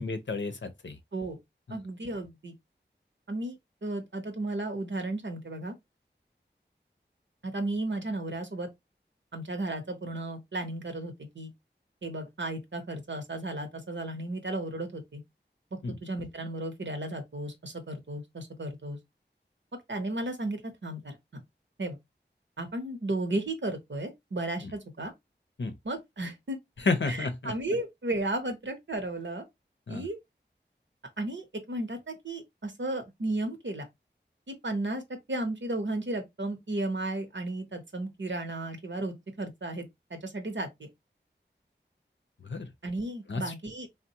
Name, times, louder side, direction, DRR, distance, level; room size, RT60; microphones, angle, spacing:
voice 1, 0.0-1.0 15.8-15.9 25.6-25.7 26.8-27.5 29.9-30.1 42.4-42.7 43.3-43.5, left 3 dB, 75° left, 0.6 m, -31 dB
voice 2, 1.7-2.5 3.3-5.8 7.4-8.7 9.3-11.5 12.0-15.2 15.9-19.0 19.9-21.4 21.8-22.0 22.6-25.1 25.8-26.6 27.1-29.4 29.9-30.2 31.2-33.9 34.5-35.0 35.3-40.9 42.8-43.9, right 2 dB, 80° right, 0.8 m, -34 dB
3.5 x 2.2 x 2.7 m
wide cardioid pair, 40°, 19 cm